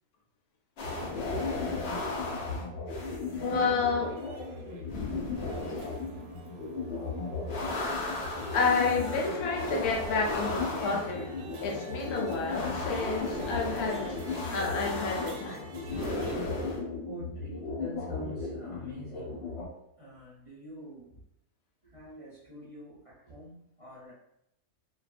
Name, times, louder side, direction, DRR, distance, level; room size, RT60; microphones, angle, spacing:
sound 1, 0.8-19.7, left 3 dB, 55° left, 0.8 m, -35 dB
voice 1, 1.4-1.8 3.3-4.3 5.7-5.9 8.5-14.2 14.5-15.7, left 4 dB, 90° left, 1.2 m, -30 dB
voice 2, 2.5-3.0 17.0-19.4 20.0-21.2 21.9-24.1, equal, 40° right, 0.5 m, -46 dB
sound 2, 4.0-16.4, right 2 dB, 65° right, 0.8 m, -46 dB
2.5 x 2.4 x 2.4 m
omnidirectional pair, 1.5 m